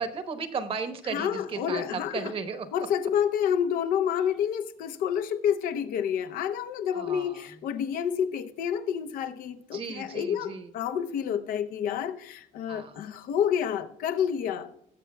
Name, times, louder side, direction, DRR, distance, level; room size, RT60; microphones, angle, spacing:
voice 1, 0.0-2.7 6.9-7.5 9.7-10.7 12.7-13.1, right 5 dB, 40° right, 1.0 m, -35 dB
voice 2, 1.1-2.3 2.7-14.9, left 8 dB, 85° left, 0.8 m, -29 dB
19.5 x 7.4 x 2.3 m
cardioid pair, 145°, 14 cm